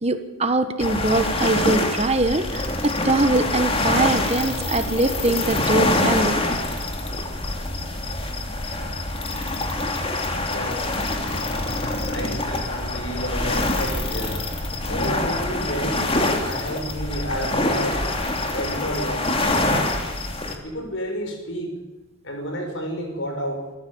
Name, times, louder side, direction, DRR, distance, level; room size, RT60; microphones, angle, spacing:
voice 1, 0.0-6.4, right 2 dB, 30° right, 8 dB, 1.4 m, -22 dB
sound 1, 0.8-20.5, left 2 dB, 25° left, 2.8 m, -25 dB
voice 2, 10.5-14.4 14.9-16.1 16.4-18.0 18.5-20.0 20.6-21.7 22.2-23.7, equal, 60° left, 4 dB, 6.1 m, -31 dB
26.5 x 14.5 x 8.6 m, 1.2 s
head